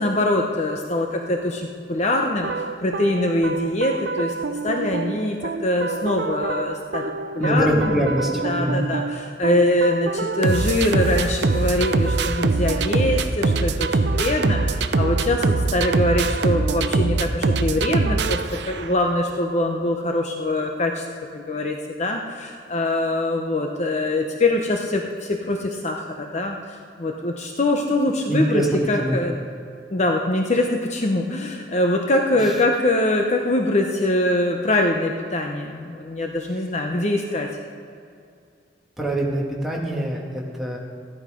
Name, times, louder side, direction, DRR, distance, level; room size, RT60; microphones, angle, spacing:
voice 1, 0.0-4.3 4.6-5.4 5.6-8.0 8.4-18.4 18.7-21.0 21.3-29.4 29.9-37.5, left 1 dB, 40° left, 2 dB, 0.9 m, -23 dB
sound 1, 2.4-19.1, right 3 dB, 70° right, 0.6 m, -24 dB
voice 2, 7.4-8.8 28.3-28.7 29.0-29.2 39.0-40.8, right 1 dB, ahead, -3 dB, 2.2 m, -23 dB
14.0 x 11.5 x 5.1 m, 2.3 s
head